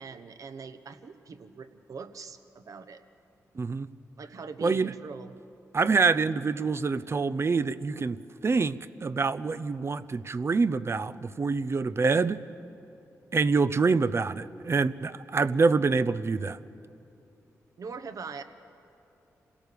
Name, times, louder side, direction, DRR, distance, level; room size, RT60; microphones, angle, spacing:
voice 1, 0.0-3.0 4.2-5.3 17.8-18.4, right 5 dB, 65° right, 10 dB, 1.1 m, -42 dB
voice 2, 3.6-3.9 4.6-4.9 5.7-12.4 13.3-16.6, right 4 dB, 45° right, 14 dB, 0.7 m, -26 dB
26.5 x 17.0 x 6.9 m, 2.8 s
cardioid pair, 55°, 6 cm